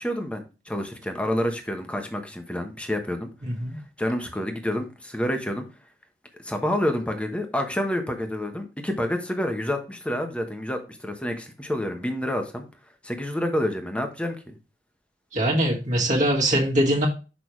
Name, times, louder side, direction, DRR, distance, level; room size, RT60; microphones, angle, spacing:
voice 1, 0.0-3.3 4.0-5.6 6.4-12.6 13.0-14.6, left 1 dB, 5° left, 5 dB, 1.1 m, -28 dB
voice 2, 15.3-17.1, right 1 dB, 45° right, -3 dB, 1.8 m, -22 dB
6.4 x 5.5 x 3.1 m, 0.31 s
head